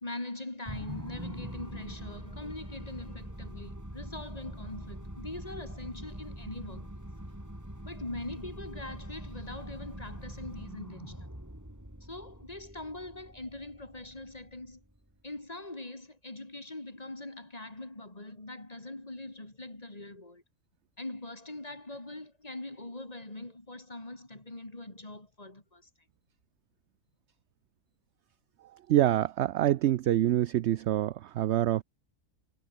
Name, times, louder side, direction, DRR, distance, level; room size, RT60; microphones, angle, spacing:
voice 1, 0.0-6.9 7.8-11.3 12.0-14.8 15.2-20.4 21.0-25.9, left 2 dB, 25° left, 3.5 m, -42 dB
sound 1, 0.7-15.1, right 1 dB, 10° right, 4.8 m, -44 dB
voice 2, 28.9-31.8, right 13 dB, 65° right, 0.7 m, -26 dB
omnidirectional pair, 1.6 m